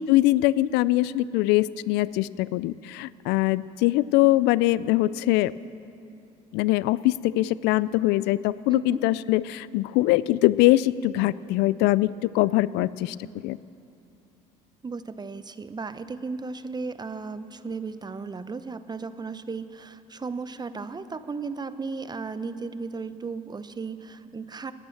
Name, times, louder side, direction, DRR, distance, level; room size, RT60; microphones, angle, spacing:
voice 1, 0.0-5.5 6.5-13.2 13.4-13.6, left 17 dB, 75° left, 19 dB, 0.4 m, -22 dB
voice 2, 14.8-24.7, right 4 dB, 25° right, 12 dB, 0.8 m, -35 dB
19.0 x 9.1 x 7.2 m, 2.6 s
supercardioid pair, 70°, 18 cm